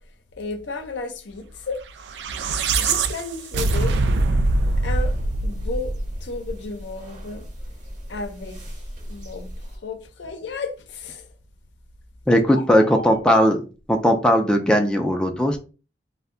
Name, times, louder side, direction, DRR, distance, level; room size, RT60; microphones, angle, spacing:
voice 1, 0.4-1.8 2.8-4.0 4.8-5.2 5.4-5.9 6.2-7.4 8.1-8.6 9.1-11.3 12.5-13.2, left 3 dB, 80° left, 0.6 m, -33 dB
sound 1, 2.0-6.4, right 3 dB, 70° right, 0.3 m, -23 dB
sound 2, 4.4-9.8, equal, 45° right, 0.7 m, -34 dB
voice 2, 12.3-15.6, equal, 5° left, 0.3 m, -18 dB
2.5 x 2.1 x 3.6 m
head